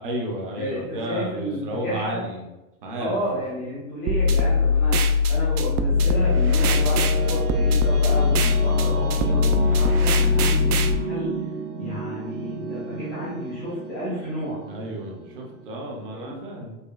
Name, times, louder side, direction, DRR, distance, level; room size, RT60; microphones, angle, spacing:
voice 1, 0.0-2.4 2.8-3.2 14.7-16.8, right 1 dB, 40° right, 0 dB, 0.6 m, -32 dB
voice 2, 0.6-2.2 2.9-11.3 11.8-14.6 16.1-16.4, equal, 10° left, -9 dB, 0.4 m, -31 dB
sound 1, 4.1-10.9, left 4 dB, 85° right, 0.5 m, -20 dB
sound 2, 5.3-16.3, right 4 dB, 70° right, 0.9 m, -32 dB
5.1 x 2.3 x 2.3 m, 1.0 s
supercardioid pair, 180°, 43 cm